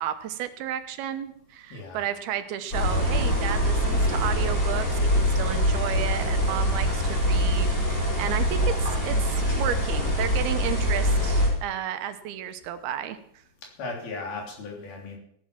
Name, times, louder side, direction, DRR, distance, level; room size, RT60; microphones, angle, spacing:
voice 1, 0.0-13.2, right 10 dB, 80° right, 9 dB, 2.9 m, -32 dB
voice 2, 1.7-2.1 13.8-15.2, left 3 dB, 70° left, 1 dB, 5.0 m, -36 dB
sound 1, 2.7-11.5, equal, 25° left, 6.4 m, -24 dB
16.0 x 10.5 x 6.0 m, 0.67 s
omnidirectional pair, 4.5 m